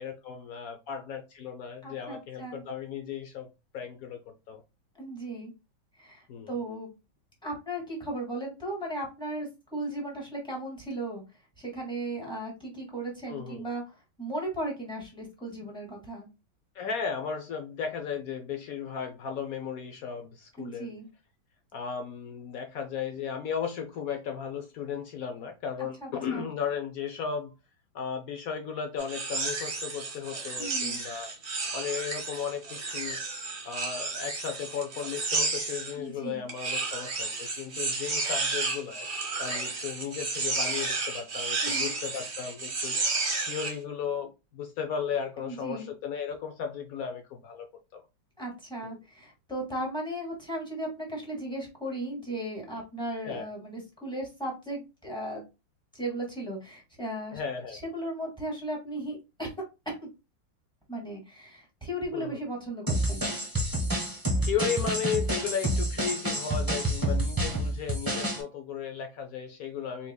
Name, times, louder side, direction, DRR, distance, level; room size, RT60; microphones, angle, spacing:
voice 1, 0.0-3.5 3.7-4.6 6.3-6.5 13.3-13.6 16.7-20.9 21.7-27.5 27.9-31.3 31.7-33.2 33.6-39.1 39.4-47.7 47.9-48.0 48.8-49.0 53.2-53.5 57.3-57.8 62.1-62.4 64.4-70.1, left 7 dB, 65° left, 0.9 m, -35 dB
voice 2, 1.8-2.6 5.0-5.5 6.0-6.9 7.4-11.2 11.6-13.8 14.2-16.3 20.6-21.1 26.0-26.5 30.6-31.0 36.0-36.4 41.6-41.9 45.4-45.9 48.4-55.4 55.9-57.4 57.7-59.5 59.9-60.0 60.9-63.3, right 1 dB, ahead, 1.8 m, -36 dB
sound 1, 29.0-35.9 36.5-43.8, right 3 dB, 40° right, 1.1 m, -32 dB
sound 2, 62.9-68.4, right 1 dB, 15° right, 1.0 m, -28 dB
4.6 x 3.6 x 2.3 m
omnidirectional pair, 2.1 m